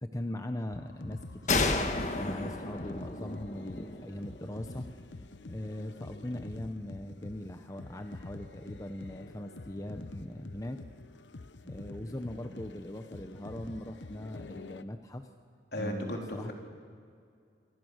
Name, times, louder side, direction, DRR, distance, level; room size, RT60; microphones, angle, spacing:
voice 1, 0.0-4.9 5.5-10.8 11.6-15.3 15.7-16.5, left 1 dB, 20° left, 6 dB, 0.9 m, -40 dB
sound 1, 0.7-14.8, left 2 dB, 90° left, 0.9 m, -47 dB
sound 2, 1.5-5.0, left 3 dB, 40° left, 1.6 m, -32 dB
voice 2, 15.7-16.5, equal, 65° left, 1 dB, 3.7 m, -35 dB
27.0 x 24.0 x 6.5 m, 2.3 s
head